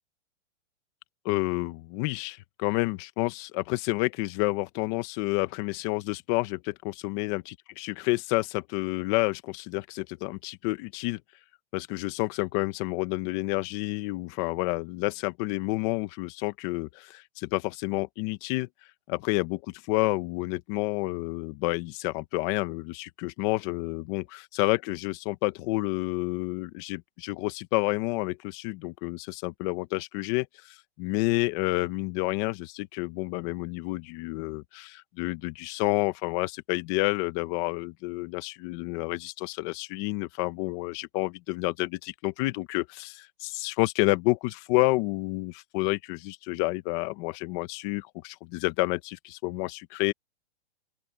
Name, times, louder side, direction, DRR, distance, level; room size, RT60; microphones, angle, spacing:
voice 1, 1.2-7.4 7.8-11.2 11.7-18.7 19.1-30.5 31.0-50.1, left 21 dB, 25° left, 1.1 m, -29 dB
open air
hypercardioid pair, 165°, 32 cm